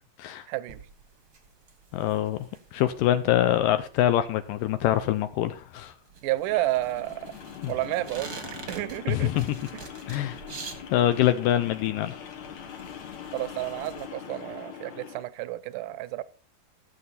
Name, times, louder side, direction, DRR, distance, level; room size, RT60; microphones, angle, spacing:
voice 1, 0.5-0.8 6.2-7.3 7.7-8.4 8.7-9.3 13.3-16.2, right 16 dB, 75° right, 2.1 m, -30 dB
sound 1, 0.7-14.1, right 4 dB, 45° right, 1.2 m, -47 dB
voice 2, 1.9-5.9 7.6-7.7 9.1-9.6 10.1-10.4 10.9-12.1, left 12 dB, 80° left, 2.1 m, -24 dB
sound 2, 6.4-15.3, left 8 dB, 60° left, 2.5 m, -43 dB
14.5 x 7.3 x 4.1 m
omnidirectional pair, 4.2 m